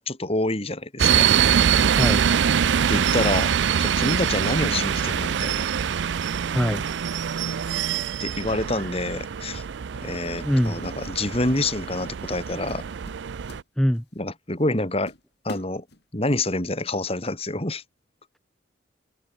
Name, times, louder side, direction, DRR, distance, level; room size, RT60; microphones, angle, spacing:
voice 1, 0.1-1.3 2.9-3.5 3.8-5.7 8.2-9.6 10.0-12.8 14.2-15.1 15.4-15.8 16.1-17.8, left 2 dB, 35° left, 3.0 m, -27 dB
sound 1, 1.0-13.6, right 8 dB, 75° right, 0.4 m, -24 dB
voice 2, 2.0-2.3 6.5-6.9 10.4-10.7 13.8-14.0, equal, ahead, 0.7 m, -22 dB
sound 2, 10.2-11.2 11.4-11.7 12.2-12.4 12.7-14.2 14.6-14.7 15.1-16.4, left 1 dB, 60° left, 3.8 m, -44 dB
open air
head